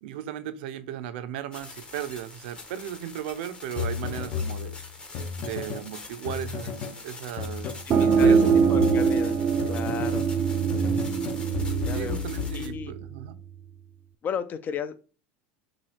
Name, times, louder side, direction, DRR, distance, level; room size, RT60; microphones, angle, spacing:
voice 1, 0.0-4.8 5.4-7.7 8.0-8.5 9.8-10.2 11.9-13.4, right 10 dB, 75° right, 0.6 m, -36 dB
sound 1, 1.5-12.7, left 3 dB, 15° left, 0.9 m, -44 dB
sound 2, 3.8-5.9 6.3-7.0 7.4-10.4 10.7-13.1, left 6 dB, 50° left, 1.0 m, -33 dB
voice 2, 7.6-8.4 8.7-9.4 9.7-10.2 11.8-12.2 12.5-12.9 14.2-15.0, left 7 dB, 30° left, 0.5 m, -34 dB
sound 3, 7.9-13.3, right 6 dB, 35° right, 0.4 m, -23 dB
6.1 x 2.3 x 3.2 m
supercardioid pair, 130°, 6 cm